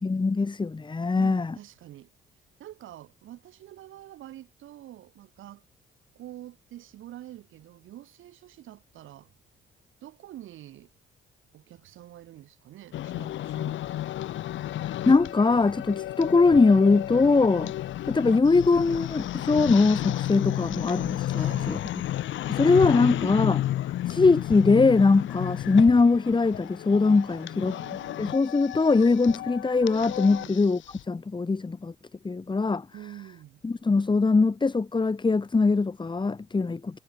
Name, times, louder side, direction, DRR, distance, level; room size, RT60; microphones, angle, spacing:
voice 1, 0.0-1.5 14.8-17.7 18.1-21.8 22.5-23.6 24.1-27.7 28.2-30.8 31.1-31.9 32.2-32.9 33.6-37.0, left 4 dB, 25° left, 2.0 m, -22 dB
voice 2, 1.1-2.1 2.6-5.6 6.1-9.3 10.0-10.9 11.5-13.8 21.3-21.8 22.5-23.2 27.3-28.2 30.4-30.6 32.9-33.6, right 13 dB, 80° right, 6.5 m, -46 dB
sound 1, 12.9-31.0, left 13 dB, 70° left, 0.9 m, -32 dB
cardioid pair, 90°, 20 cm